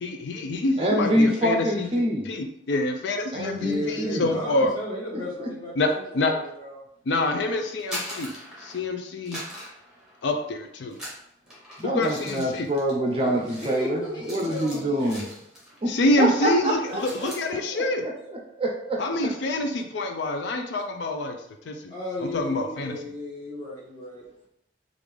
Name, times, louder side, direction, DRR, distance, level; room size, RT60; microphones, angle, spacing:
voice 1, 0.0-1.9 2.3-4.7 5.8-5.9 6.1-6.3 7.1-8.3 8.6-9.4 10.2-11.0 11.8-12.7 15.9-18.0 19.0-21.3 21.6-21.7 22.2-23.0, left 2 dB, 75° left, 5 dB, 0.4 m, -26 dB
voice 2, 0.8-2.3 3.3-4.3 5.4-5.5 11.8-15.2 15.8-15.9 16.2-19.0, equal, 30° right, 1 dB, 0.5 m, -26 dB
voice 3, 3.6-6.8 13.1-15.2 21.9-24.5, left 1 dB, 25° left, -6 dB, 1.1 m, -34 dB
sound 1, 7.7-8.9 9.3-10.5 10.9-15.8 16.1-16.4 16.7-17.5, equal, 5° right, 1.0 m, -40 dB
3.4 x 2.5 x 3.3 m, 0.75 s
head